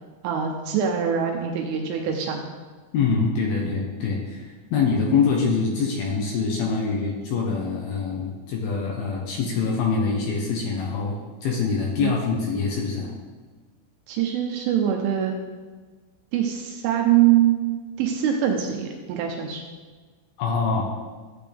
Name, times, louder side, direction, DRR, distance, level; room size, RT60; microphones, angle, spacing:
voice 1, 0.2-2.5 12.0-12.2 14.1-15.3 16.3-19.6, right 10 dB, 80° right, 2 dB, 3.1 m, -23 dB
voice 2, 2.9-11.2 11.4-13.1 20.4-20.8, left 5 dB, 80° left, -2 dB, 2.2 m, -24 dB
13.5 x 8.0 x 3.5 m, 1.4 s
omnidirectional pair, 5.9 m